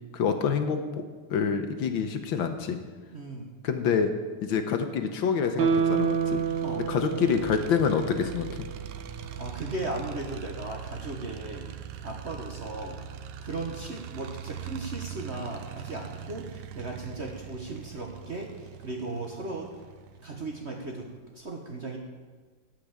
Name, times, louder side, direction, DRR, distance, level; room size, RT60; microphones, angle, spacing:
voice 1, 0.1-1.0 1.3-2.8 3.6-4.1 4.4-6.4 6.8-8.7, left 6 dB, 70° left, 7 dB, 1.6 m, -27 dB
voice 2, 3.1-3.6 6.6-6.8 9.1-11.7 12.0-13.0 13.4-19.7 20.2-22.0, right 2 dB, 40° right, 1 dB, 1.2 m, -37 dB
Guitar, 5.6-8.8 9.2-9.3, right 6 dB, 65° right, 1.4 m, -28 dB
sound 1, 5.6-21.2, right 9 dB, 90° right, 1.6 m, -42 dB
13.0 x 6.0 x 8.7 m, 1.4 s
omnidirectional pair, 2.3 m